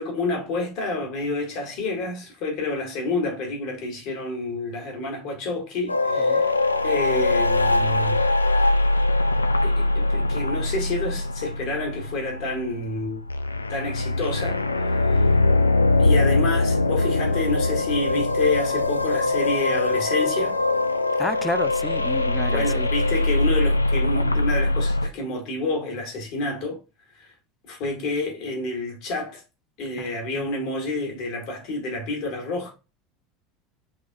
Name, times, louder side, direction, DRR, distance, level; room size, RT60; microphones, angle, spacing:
voice 1, 0.0-6.5 6.8-8.2 9.6-13.2 13.7-15.3 16.0-20.6 22.5-26.8 27.1-27.3 27.7-29.4 29.8-32.7, left 2 dB, 50° left, 2.1 m, -29 dB
sound 1, 5.9-25.1, left 2 dB, 85° left, 0.3 m, -22 dB
voice 2, 21.2-22.9 30.0-30.5, left 1 dB, 5° left, 0.3 m, -31 dB
5.7 x 3.5 x 2.4 m
figure-of-eight pair, 75°, 0 cm